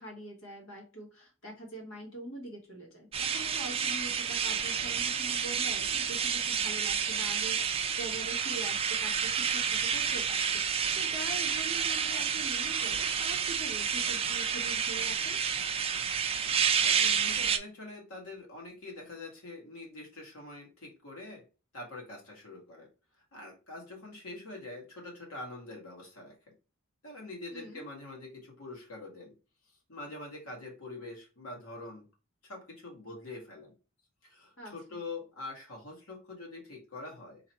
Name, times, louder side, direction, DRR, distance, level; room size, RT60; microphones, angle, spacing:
voice 1, 0.0-15.4 27.5-27.8 34.6-34.7, right 2 dB, 65° left, 0 dB, 1.7 m, -44 dB
sound 1, 3.1-17.6, right 7 dB, 30° right, 0.4 m, -30 dB
voice 2, 16.8-21.4 21.7-22.9 23.3-26.4 27.0-29.3 29.9-32.1 32.4-33.7 34.2-37.4, left 2 dB, 85° left, 0 dB, 1.9 m, -44 dB
3.9 x 2.9 x 4.3 m, 0.33 s
head